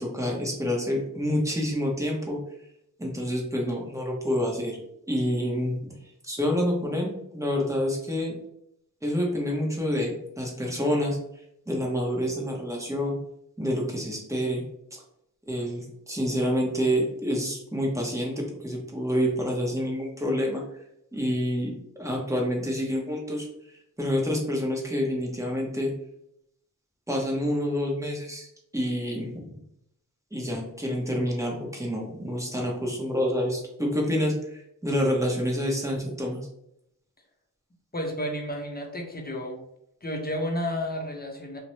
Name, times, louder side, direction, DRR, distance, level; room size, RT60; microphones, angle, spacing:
voice 1, 0.0-2.4 3.0-5.8 6.2-8.4 9.0-11.2 11.7-13.2 13.6-15.0 15.5-20.8 21.1-25.9 27.1-28.5 28.7-29.5 30.3-36.4, equal, 10° right, -2 dB, 0.8 m, -28 dB
voice 2, 37.9-39.6 40.0-41.6, equal, 25° left, 1 dB, 0.6 m, -31 dB
2.6 x 2.1 x 3.0 m, 0.78 s
wide cardioid pair, 40°, 35 cm